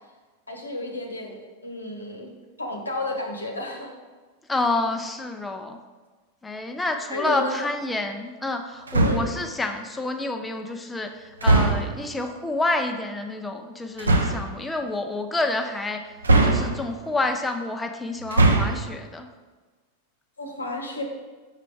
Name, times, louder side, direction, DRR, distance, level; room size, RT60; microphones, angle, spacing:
voice 1, 0.5-2.3 2.6-3.9 7.1-7.6 9.0-9.2 20.4-21.0, left 1 dB, 80° left, 3 dB, 1.0 m, -32 dB
voice 2, 4.5-5.8 6.4-16.0 16.4-19.3, left 2 dB, 10° left, 5 dB, 0.4 m, -28 dB
sound 1, 8.9-9.4 11.4-12.0 14.0-14.5 16.2-17.0 18.2-18.9, right 2 dB, 75° right, 0.6 m, -20 dB
5.6 x 5.0 x 4.7 m, 1.4 s
figure-of-eight pair, 90°, 0 cm